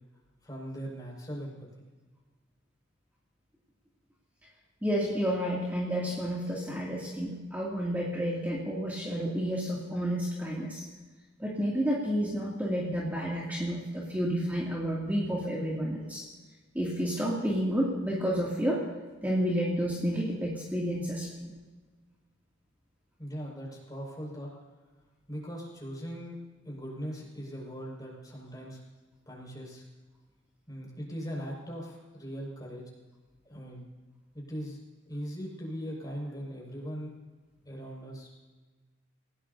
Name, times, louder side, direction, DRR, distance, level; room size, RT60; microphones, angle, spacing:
voice 1, 0.4-1.7 23.2-24.5 25.3-26.4 26.6-28.8 29.3-29.8 30.7-32.8 33.4-33.8 34.3-34.8 35.1-37.1 37.6-38.3, equal, 20° left, -2 dB, 5.8 m, -39 dB
voice 2, 4.8-10.8 11.4-16.3 16.7-18.8 19.2-21.5, equal, 10° right, -6 dB, 2.6 m, -30 dB
29.5 x 17.5 x 2.8 m, 1.3 s
head